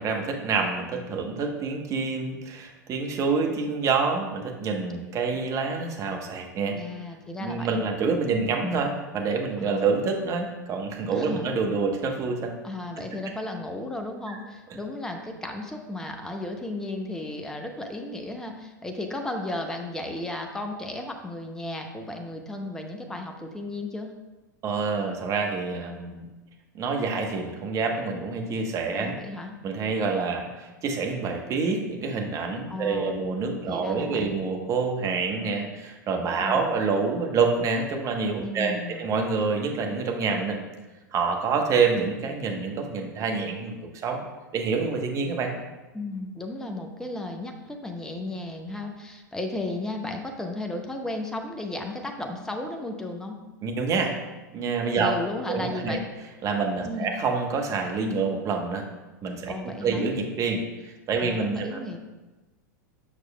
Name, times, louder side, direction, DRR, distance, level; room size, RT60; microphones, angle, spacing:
voice 1, 0.0-6.7 7.4-12.5 14.3-14.4 24.6-26.3 26.7-29.1 29.6-40.6 41.1-43.7 44.0-44.2 44.5-45.5 53.6-54.1 54.5-55.2 55.5-56.0 56.4-58.8 59.2-61.8, right 4 dB, 30° right, 3 dB, 1.0 m, -27 dB
voice 2, 6.7-7.9 9.6-9.9 11.1-11.5 12.6-24.1 28.9-29.5 32.7-33.3 33.7-34.4 36.4-36.8 38.4-39.1 45.9-53.4 55.0-56.0 56.8-57.1 59.5-60.1 61.2-62.0, left 2 dB, 5° left, 3 dB, 0.6 m, -34 dB
7.3 x 6.1 x 2.2 m, 1.1 s
figure-of-eight pair, 90°, 10 cm